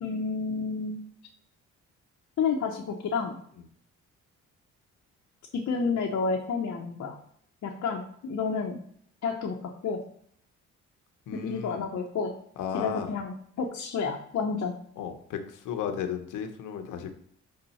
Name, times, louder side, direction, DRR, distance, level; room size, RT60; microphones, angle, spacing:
voice 1, 0.0-1.0 2.4-3.3 5.5-7.2 7.6-8.8 9.2-10.0 11.3-12.3 12.7-14.7, left 5 dB, 55° left, 0 dB, 0.9 m, -30 dB
voice 2, 11.3-11.9 12.6-13.2 15.0-17.1, left 8 dB, 85° left, 6 dB, 1.0 m, -34 dB
6.8 x 3.7 x 4.2 m, 0.64 s
cardioid pair, 90°, 30 cm